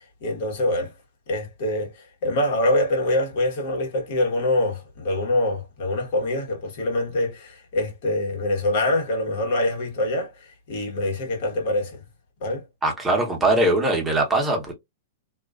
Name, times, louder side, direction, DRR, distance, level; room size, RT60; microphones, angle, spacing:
voice 1, 0.2-0.9 1.3-12.0 12.4-12.6, left 1 dB, 60° left, 1.1 m, -25 dB
voice 2, 12.8-14.7, right 2 dB, 15° right, 0.9 m, -21 dB
2.4 x 2.3 x 2.2 m
hypercardioid pair, 130°, 0 cm